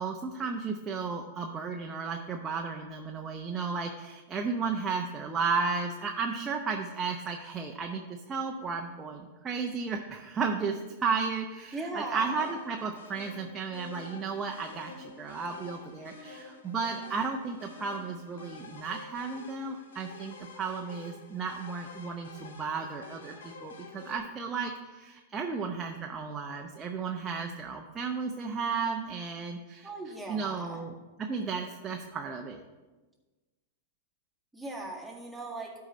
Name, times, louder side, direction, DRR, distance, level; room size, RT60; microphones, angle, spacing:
voice 1, 0.0-8.0 8.3-29.9 30.3-30.9 31.3-32.6, right 5 dB, 20° right, 2 dB, 0.7 m, -34 dB
voice 2, 11.7-12.5 29.8-30.8 34.5-35.7, right 2 dB, ahead, -4 dB, 1.9 m, -38 dB
sound 1, 12.2-24.2, left 4 dB, 75° left, 1.2 m, -49 dB
12.0 x 4.8 x 4.1 m, 1.2 s
hypercardioid pair, 105°, 0 cm